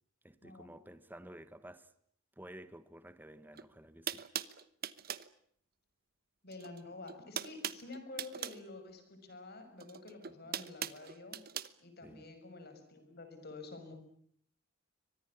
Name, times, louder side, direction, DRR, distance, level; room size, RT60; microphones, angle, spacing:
voice 1, 0.2-1.9 2.4-4.3 10.4-10.5 12.0-12.3, right 1 dB, 10° right, 1.2 m, -52 dB
sound 1, 3.5-3.6 4.1-5.3 6.5-6.8 7.0-8.6 9.8-11.7, right 9 dB, 45° right, 1.0 m, -40 dB
voice 2, 6.4-11.4 11.8-13.9, left 3 dB, 50° left, 6.1 m, -49 dB
24.5 x 20.0 x 9.9 m
head